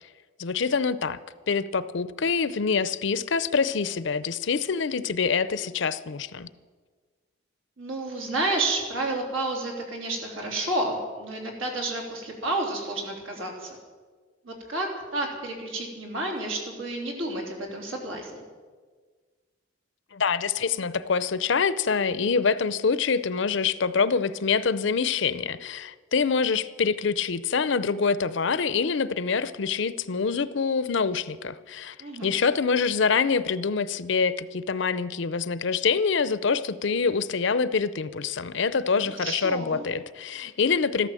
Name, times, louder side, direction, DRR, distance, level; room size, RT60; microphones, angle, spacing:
voice 1, 0.4-1.2 1.5-6.5 20.1-32.0 32.2-41.1, left 5 dB, 65° left, 15 dB, 0.6 m, -25 dB
voice 2, 7.8-13.8 14.4-18.4 32.0-32.3 39.0-39.8, right 2 dB, 80° right, 1 dB, 3.5 m, -30 dB
14.0 x 12.5 x 7.6 m, 1.5 s
head